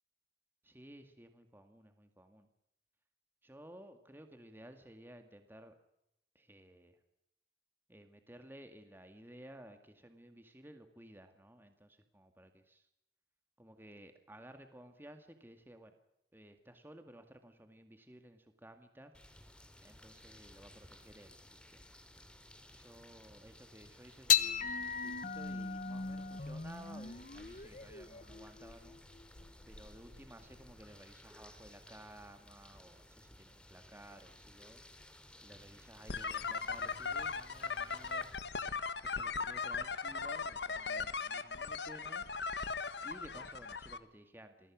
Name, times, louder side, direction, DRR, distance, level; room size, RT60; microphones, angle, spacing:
voice 1, 0.6-2.5 3.4-5.7 6.3-7.0 7.9-12.9 13.6-16.0 16.3-19.1 19.8-21.4 21.7-21.8 22.7-29.0 29.7-34.8 35.4-38.3 39.0-42.3 43.0-44.7, right 1 dB, 10° right, 7 dB, 2.1 m, -55 dB
sound 1, 19.1-38.4, left 1 dB, 5° left, 2.9 m, -58 dB
sound 2, 24.3-30.8, left 7 dB, 45° left, 1.2 m, -37 dB
sound 3, 36.1-44.0, left 5 dB, 75° left, 1.5 m, -38 dB
28.5 x 22.5 x 6.3 m, 0.80 s
head